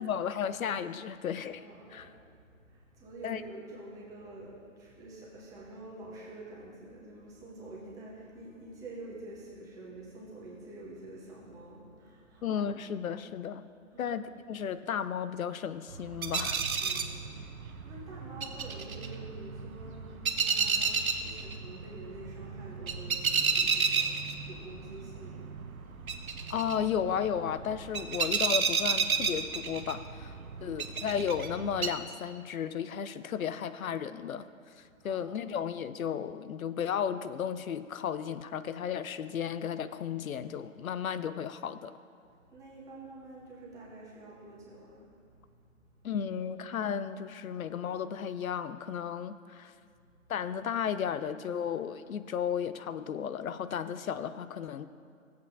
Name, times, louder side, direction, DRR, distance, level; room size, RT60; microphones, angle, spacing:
voice 1, 0.0-1.6 1.9-2.1 3.2-3.4 12.4-13.6 14.0-14.2 14.5-16.9 26.5-34.4 35.0-41.9 46.0-49.7 50.3-54.9, left 8 dB, 80° left, 13 dB, 0.5 m, -34 dB
voice 2, 1.5-12.6 13.8-14.2 16.8-26.3 30.6-31.0 35.0-35.6 42.5-45.9 46.1-46.2, right 2 dB, 10° right, -5 dB, 1.0 m, -48 dB
sound 1, 15.9-31.9, right 5 dB, 85° right, 0.8 m, -32 dB
14.5 x 7.8 x 2.6 m, 2.3 s
hypercardioid pair, 145°, 41 cm